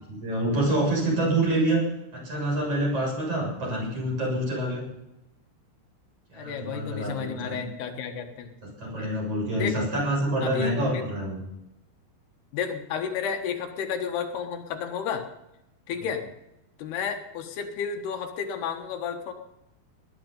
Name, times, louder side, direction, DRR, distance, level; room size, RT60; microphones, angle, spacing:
voice 1, 0.2-1.8 2.1-4.8 6.3-7.6 8.6-11.4 15.9-16.1, right 1 dB, 35° right, -2 dB, 8.0 m, -27 dB
voice 2, 6.3-8.5 9.0-9.1 9.5-9.8 10.4-11.0 12.5-15.3 15.9-16.2 16.8-19.3, left 7 dB, 75° left, 5 dB, 3.4 m, -32 dB
19.5 x 12.0 x 5.4 m, 0.89 s
omnidirectional pair, 4.7 m